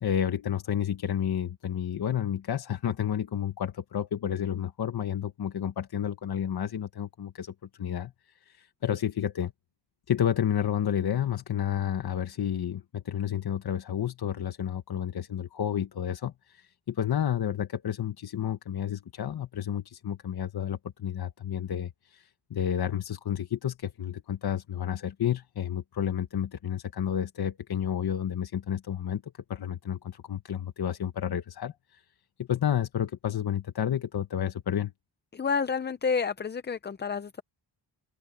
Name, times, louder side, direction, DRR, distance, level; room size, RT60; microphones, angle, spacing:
voice 1, 0.0-8.1 8.5-9.5 10.1-29.2 29.5-32.0 32.4-34.9, left 9 dB, 55° left, 1.3 m, -31 dB
voice 2, 35.3-37.4, left 5 dB, 25° left, 0.5 m, -29 dB
wide cardioid pair, 165°, 44 cm